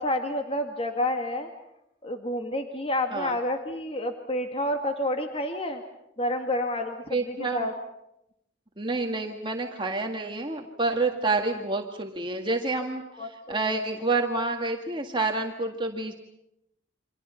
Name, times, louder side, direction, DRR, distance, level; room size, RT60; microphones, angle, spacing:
voice 1, 0.0-1.5 2.0-5.8 6.2-7.7 13.1-14.0, left 1 dB, 30° left, 5 dB, 2.0 m, -29 dB
voice 2, 7.1-7.7 8.8-13.0 13.5-16.1, right 3 dB, 25° right, 2 dB, 1.9 m, -28 dB
29.0 x 26.0 x 5.8 m, 0.82 s
head